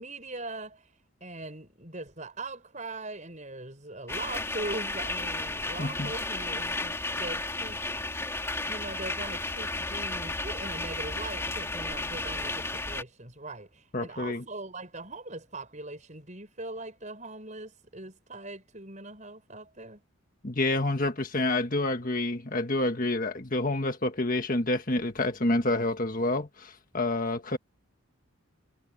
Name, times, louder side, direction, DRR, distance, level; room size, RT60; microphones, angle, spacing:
voice 1, 0.0-8.2 8.7-20.0, right 2 dB, 35° right, 7.0 m, -41 dB
sound 1, 4.1-13.0, left 2 dB, 10° left, 3.2 m, -33 dB
voice 2, 5.8-6.1 13.9-14.4 20.4-27.6, left 2 dB, 40° left, 1.6 m, -28 dB
head